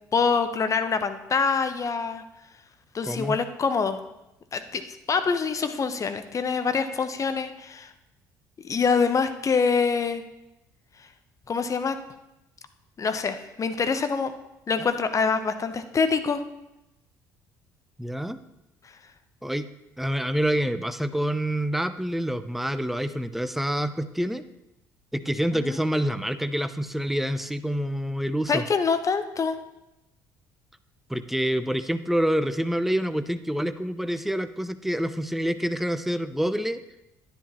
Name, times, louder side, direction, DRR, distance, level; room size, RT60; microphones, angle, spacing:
voice 1, 0.1-2.2 2.9-4.0 4.5-7.9 8.6-10.2 11.5-12.0 13.0-14.3 14.7-16.4 25.5-25.8 28.5-29.6, left 5 dB, 35° left, 9 dB, 0.9 m, -25 dB
voice 2, 3.0-3.4 18.0-18.4 19.4-19.7 20.0-24.4 25.1-28.6 31.1-36.8, equal, ahead, 12 dB, 0.6 m, -27 dB
10.5 x 10.0 x 3.0 m, 0.91 s
figure-of-eight pair, 55°, 10 cm